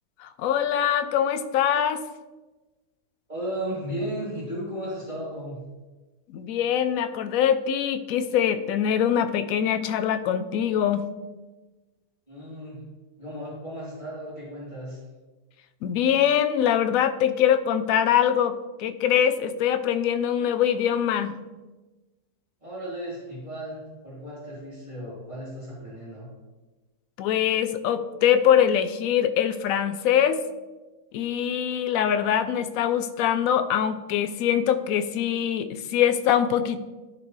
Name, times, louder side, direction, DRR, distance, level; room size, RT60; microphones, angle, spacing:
voice 1, 0.2-2.0 6.3-11.0 15.8-21.4 27.2-30.4 31.1-36.8, left 9 dB, 70° left, 10 dB, 0.9 m, -23 dB
voice 2, 3.3-5.6 12.3-12.8 13.2-15.0 22.6-26.3, equal, 25° right, -11 dB, 3.0 m, -35 dB
13.0 x 4.4 x 3.1 m, 1.2 s
omnidirectional pair, 1.8 m